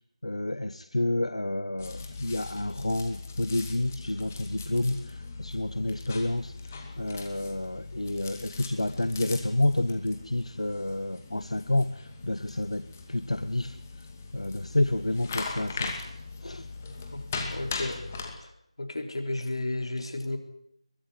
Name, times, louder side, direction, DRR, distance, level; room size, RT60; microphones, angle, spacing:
voice 1, 0.2-6.5 7.0-13.8 14.3-15.9 16.4-16.7, left 1 dB, 80° left, 11 dB, 1.1 m, -29 dB
sound 1, 1.8-18.4, left 4 dB, 20° left, 2.4 m, -40 dB
voice 2, 17.5-18.0 18.8-20.4, left 2 dB, 60° left, 5 dB, 3.9 m, -32 dB
22.5 x 14.0 x 9.8 m, 0.75 s
figure-of-eight pair, 165°, 3 cm